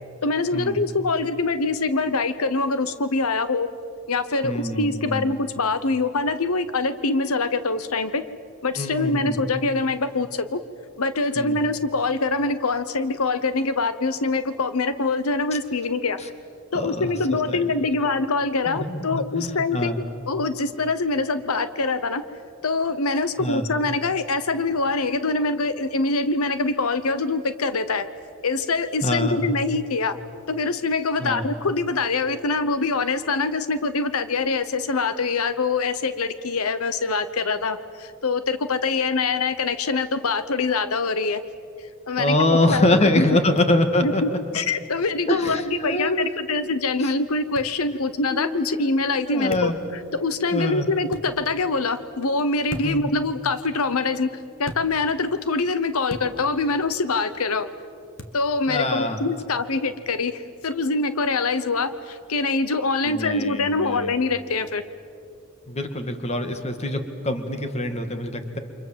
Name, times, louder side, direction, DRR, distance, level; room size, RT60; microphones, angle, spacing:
voice 1, 0.2-3.7 4.1-8.2 8.6-10.6 11.0-16.2 16.7-19.9 20.3-22.2 22.6-28.1 28.4-30.1 30.5-41.4 42.1-42.8 43.2-43.3 44.0-49.7 50.1-54.3 54.6-57.7 58.3-64.8, left 3 dB, 85° left, 12 dB, 0.9 m, -24 dB
voice 2, 4.4-5.3 8.8-9.4 11.4-11.6 16.2-16.3 16.7-17.1 17.5-17.7 18.7-20.0 23.4-23.7 29.0-29.4 31.2-31.4 42.2-44.2 45.3-46.3 47.0-47.1 48.3-48.9 49.3-49.8 50.5-50.9 52.8-53.1 58.7-59.2 63.1-64.1 65.7-68.6, left 1 dB, 30° left, 7 dB, 2.0 m, -24 dB
sound 1, 43.6-43.7 45.4-45.6 47.5-47.7 49.5-49.8 51.1-51.3 52.7-53.1 54.6-54.9 56.1-56.3 58.2-58.4, left 1 dB, 60° left, 1.9 m, -36 dB
29.5 x 26.5 x 7.5 m, 2.4 s
head